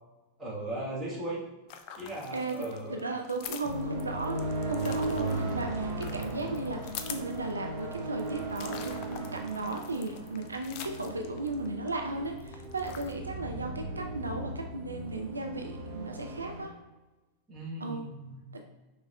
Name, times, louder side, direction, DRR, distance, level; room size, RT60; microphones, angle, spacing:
voice 1, 0.4-1.4 2.0-3.0 17.5-18.4, right 1 dB, 10° right, -6 dB, 1.5 m, -37 dB
sound 1, 1.7-11.9 12.3-13.1, left 8 dB, 45° left, 0.3 m, -45 dB
voice 2, 2.3-16.7 17.8-18.0 18.5-18.6, right 2 dB, 80° right, 3 dB, 0.3 m, -36 dB
sound 2, 3.6-16.6, right 2 dB, 50° right, 0.8 m, -37 dB
4.9 x 3.1 x 2.2 m, 1.1 s
figure-of-eight pair, 90°, 0 cm